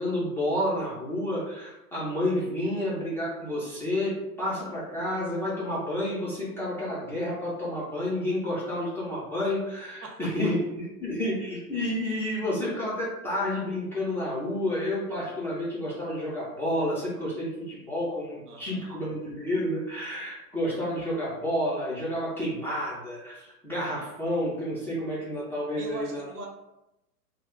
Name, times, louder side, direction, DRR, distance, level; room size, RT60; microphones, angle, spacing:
voice 1, 0.0-26.2, left 1 dB, 5° left, -9 dB, 0.6 m, -30 dB
voice 2, 10.0-10.5 18.5-19.0 25.8-26.5, right 2 dB, 75° right, 0 dB, 1.0 m, -41 dB
2.3 x 2.2 x 3.7 m, 0.92 s
hypercardioid pair, 110°, 46 cm